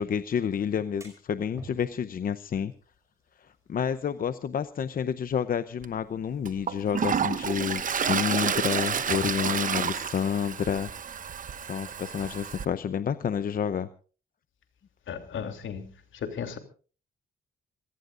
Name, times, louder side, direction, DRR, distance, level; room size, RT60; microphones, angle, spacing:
voice 1, 0.0-2.7 3.7-10.9 11.6-13.9, left 7 dB, 45° left, 12 dB, 0.7 m, -29 dB
sound 1, 0.7-11.9, right 2 dB, 15° right, 5.4 m, -55 dB
Toilet flush, 5.8-5.9 6.5-12.7, right 7 dB, 40° right, 1.0 m, -30 dB
voice 2, 15.1-16.6, left 7 dB, 75° left, 6 dB, 3.1 m, -36 dB
26.5 x 18.0 x 2.5 m, 0.38 s
wide cardioid pair, 175°, 20 cm